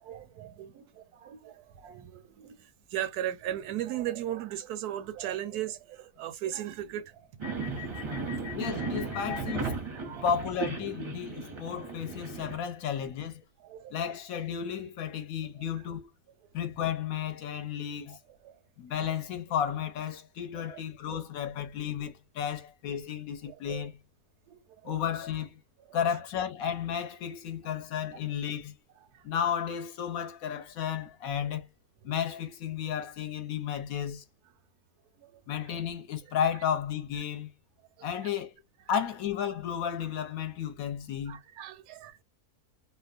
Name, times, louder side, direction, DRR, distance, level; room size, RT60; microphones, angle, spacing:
voice 1, 0.0-7.3 7.8-8.3 9.1-9.2 10.0-10.3 11.7-11.9 13.6-14.1 18.1-18.2 18.4-18.6 20.5-20.8 21.1-21.2 23.5-23.9 24.5-25.0 25.9-26.0 29.1-29.2 35.2-35.4 41.3-42.2, right 12 dB, 85° right, 1.1 m, -38 dB
sound 1, 7.4-12.6, right 3 dB, 30° right, 0.5 m, -35 dB
voice 2, 8.5-9.8 10.2-13.4 13.9-16.1 16.5-18.2 18.8-23.9 24.8-25.6 25.9-28.7 29.2-31.7 32.0-34.2 35.5-37.5 38.0-38.6 38.9-41.4, left 8 dB, 70° left, 1.1 m, -33 dB
2.9 x 2.1 x 2.4 m
omnidirectional pair, 1.6 m